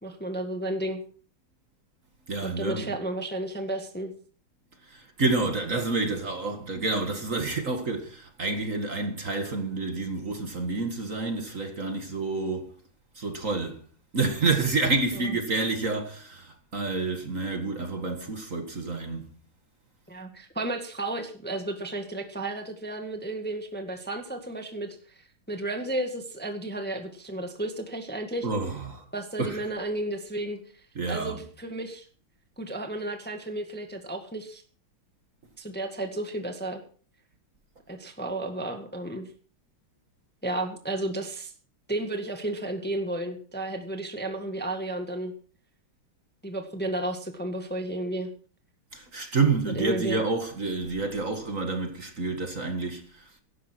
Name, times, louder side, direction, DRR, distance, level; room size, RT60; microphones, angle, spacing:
voice 1, 0.0-1.0 2.4-4.1 15.3-15.4 20.1-28.5 29.1-30.6 31.1-32.0 32.6-34.6 35.6-36.8 37.9-39.3 40.4-41.5 41.9-45.3 46.4-48.3 49.7-50.2, right 1 dB, 5° left, 1.6 m, -33 dB
voice 2, 2.3-3.0 4.9-12.7 13.2-13.8 14.1-19.3 28.4-29.1 29.4-29.6 31.0-31.4 48.9-53.4, right 3 dB, 40° right, 2.1 m, -29 dB
16.5 x 13.0 x 4.5 m
omnidirectional pair, 2.3 m